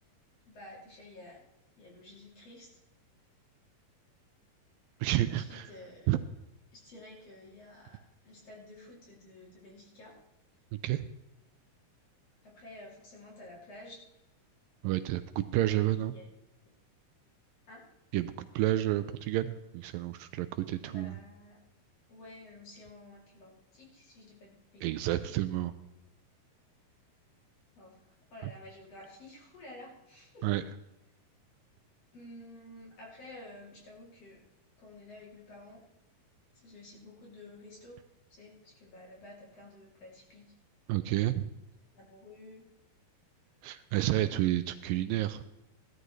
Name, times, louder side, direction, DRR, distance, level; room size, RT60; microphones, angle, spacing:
voice 1, 0.4-1.4 1.8-2.7 5.3-6.1 6.7-8.0 8.2-10.2 12.4-14.1 15.8-16.3 17.7-17.9 20.9-21.6 22.1-25.4 27.8-28.0 28.3-30.5 32.1-34.4 34.8-35.8 36.6-38.0 38.3-40.5 41.9-42.6, left 1 dB, 45° left, -3 dB, 3.7 m, -51 dB
voice 2, 5.0-5.7 6.1-6.2 10.8-11.1 14.8-16.1 18.1-21.2 24.8-25.7 30.4-30.6 40.9-41.5 43.6-45.4, right 14 dB, 80° right, 11 dB, 2.2 m, -30 dB
16.5 x 12.5 x 3.2 m, 0.91 s
omnidirectional pair, 4.2 m